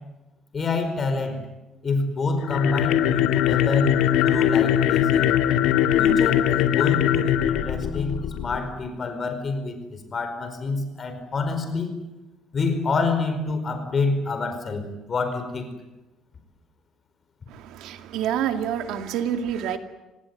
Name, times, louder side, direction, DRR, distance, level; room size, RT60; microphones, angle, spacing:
voice 1, 0.5-1.4 1.8-5.3 6.0-11.9 12.5-15.7, left 3 dB, 30° left, 8 dB, 4.9 m, -27 dB
sound 1, 2.4-8.7, left 10 dB, 90° left, 1.7 m, -21 dB
voice 2, 17.5-19.8, right 9 dB, 80° right, 7 dB, 2.3 m, -27 dB
27.0 x 18.5 x 9.4 m, 1.0 s
cardioid pair, 140°, 0 cm